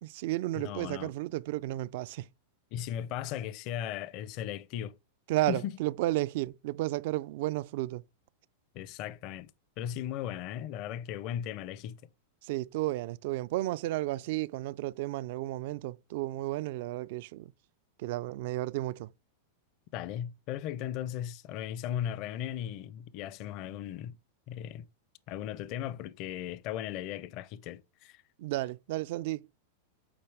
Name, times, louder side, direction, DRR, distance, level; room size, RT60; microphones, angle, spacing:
voice 1, 0.0-2.3 5.3-8.0 12.4-17.5 18.0-19.1 28.4-29.5, right 17 dB, 60° right, 0.3 m, -33 dB
voice 2, 0.5-1.1 2.7-5.0 5.5-5.7 8.7-9.5 9.8-12.0 19.9-24.2 24.5-24.8 25.3-28.2, left 11 dB, 45° left, 0.5 m, -37 dB
8.7 x 4.1 x 3.4 m
supercardioid pair, 145°, 0 cm